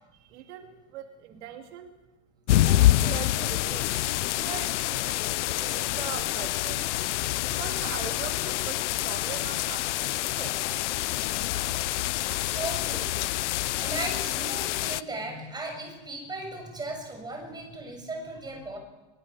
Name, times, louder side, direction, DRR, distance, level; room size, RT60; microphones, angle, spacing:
voice 1, 0.1-1.9 2.5-3.9 4.4-6.9 7.5-10.5, right 10 dB, 75° right, 4 dB, 2.6 m, -41 dB
sound 1, 2.5-15.0, left 15 dB, 85° left, 0.8 m, -27 dB
voice 2, 12.4-13.4 13.8-18.8, right 2 dB, 10° right, 3 dB, 6.9 m, -37 dB
23.0 x 22.5 x 7.0 m, 1.1 s
supercardioid pair, 145°, 34 cm